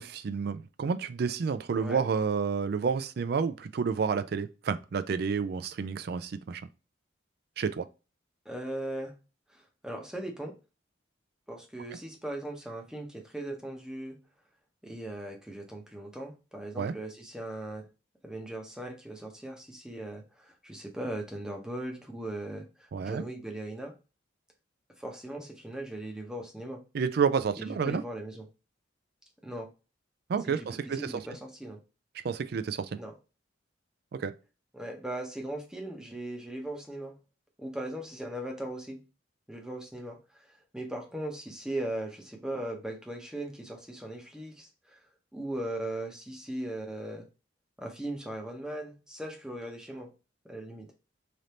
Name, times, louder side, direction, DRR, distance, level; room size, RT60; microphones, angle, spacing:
voice 1, 0.0-6.6 7.6-7.9 16.8-16.9 22.9-23.2 26.9-28.0 30.3-31.3 32.2-33.0 34.1-34.3, right 6 dB, 55° right, 0.3 m, -30 dB
voice 2, 8.5-9.1 9.5-10.5 11.5-14.2 14.8-17.8 18.2-22.7 23.0-23.9 25.0-26.8 27.5-28.5 29.4-29.7 30.4-30.7 31.0-31.8 33.0-33.1 34.7-37.2 37.6-39.0 39.5-40.2 40.7-44.9 45.3-47.3 47.8-50.1 50.4-50.9, right 1 dB, 5° right, 0.7 m, -38 dB
3.3 x 2.6 x 4.2 m
head